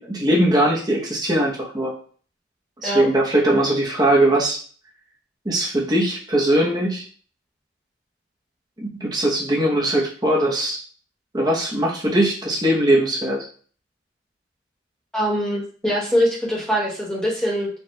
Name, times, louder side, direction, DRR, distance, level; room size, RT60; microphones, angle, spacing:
voice 1, 0.0-1.9 2.8-4.6 5.4-7.0 8.8-10.8 11.3-13.4, right 1 dB, 20° right, -3 dB, 0.8 m, -20 dB
voice 2, 15.1-17.7, equal, 5° left, -5 dB, 1.2 m, -23 dB
4.3 x 2.4 x 3.1 m, 0.44 s
head